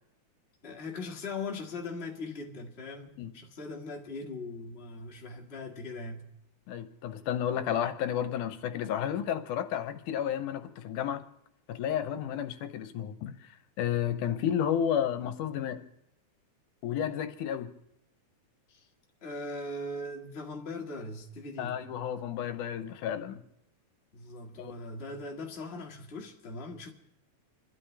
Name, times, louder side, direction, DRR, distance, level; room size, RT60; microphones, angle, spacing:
voice 1, 0.6-6.3 18.7-18.9 19.2-21.8 24.1-26.9, left 2 dB, 25° left, 1.6 m, -40 dB
voice 2, 6.7-11.2 11.7-15.8 16.8-17.7 21.6-23.4 24.6-24.7, left 9 dB, 80° left, 2.3 m, -32 dB
28.0 x 13.0 x 3.3 m
omnidirectional pair, 3.6 m